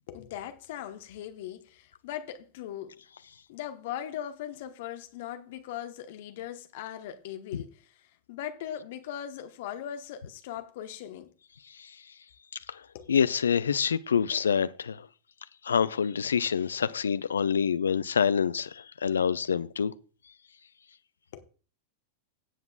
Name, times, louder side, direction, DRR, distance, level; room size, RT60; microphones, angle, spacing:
voice 1, 0.1-3.0 3.5-7.7 8.3-11.3 12.9-13.1 21.3-21.4, left 10 dB, 55° left, 1.0 m, -39 dB
voice 2, 13.1-15.1 15.6-19.9, left 7 dB, 70° left, 0.4 m, -26 dB
17.5 x 7.8 x 2.3 m
figure-of-eight pair, 90°, 0 cm